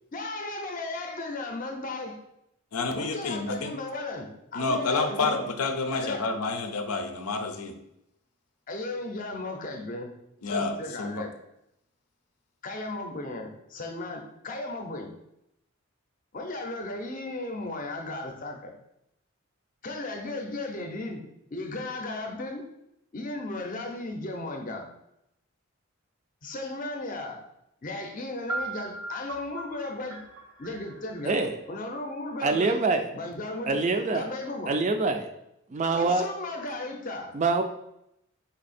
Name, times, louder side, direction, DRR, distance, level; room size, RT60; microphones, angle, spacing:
voice 1, 0.1-2.2 2.9-5.5 5.9-6.2 8.7-10.1 10.5-11.3 12.6-15.1 16.3-18.7 19.8-21.2 21.5-22.6 23.1-24.9 26.4-27.4 27.8-30.2 30.6-31.4 31.7-32.8 33.1-33.8 34.1-34.7 35.9-37.4, left 2 dB, 35° left, 3 dB, 0.6 m, -35 dB
voice 2, 2.7-3.8 4.5-7.7 10.4-11.2, left 3 dB, 90° left, 6 dB, 0.6 m, -29 dB
sound 1, 28.5-32.3, right 2 dB, 80° right, 0.8 m, -39 dB
voice 3, 31.2-31.6 32.4-33.1 33.7-34.3 34.7-35.3 35.7-36.3 37.3-37.6, right 3 dB, 30° right, 6 dB, 0.3 m, -25 dB
4.2 x 2.8 x 4.1 m, 0.80 s
head